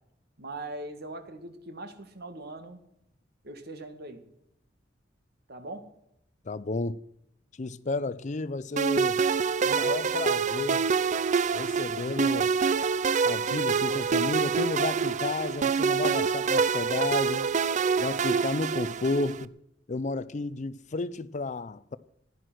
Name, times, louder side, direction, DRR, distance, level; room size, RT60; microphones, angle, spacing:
voice 1, 0.4-2.8 3.4-4.2 5.5-5.9, right 2 dB, 60° right, 1.9 m, -41 dB
voice 2, 6.5-7.0 7.6-9.2 9.6-10.8 11.5-12.6 13.2-17.5 18.0-19.5 19.9-22.0, left 3 dB, 40° left, 0.5 m, -32 dB
sound 1, 8.8-19.4, right 5 dB, 40° right, 0.5 m, -26 dB
15.5 x 11.0 x 6.3 m
head